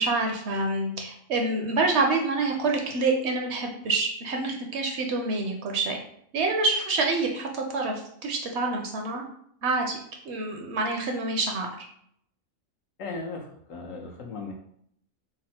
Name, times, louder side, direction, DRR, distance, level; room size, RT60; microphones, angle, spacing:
voice 1, 0.0-6.0 6.3-9.2 9.6-10.0 10.2-11.7, right 3 dB, 65° right, 2 dB, 0.8 m, -27 dB
voice 2, 13.0-14.5, left 3 dB, 75° left, 2 dB, 1.1 m, -37 dB
3.5 x 2.1 x 4.2 m, 0.68 s
omnidirectional pair, 1.4 m